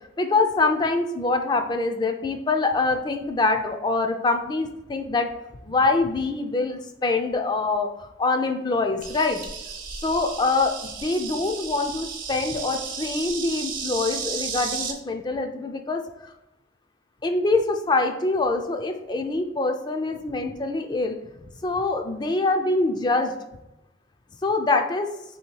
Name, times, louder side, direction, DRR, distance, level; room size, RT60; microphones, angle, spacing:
voice 1, 0.2-5.3 5.6-9.4 10.0-16.3 17.2-21.2 21.6-23.3 24.4-25.1, left 3 dB, 25° left, 5 dB, 0.3 m, -24 dB
Insect, 9.0-14.9, right 6 dB, 45° right, 0.5 m, -34 dB
3.4 x 2.8 x 4.5 m, 0.93 s
head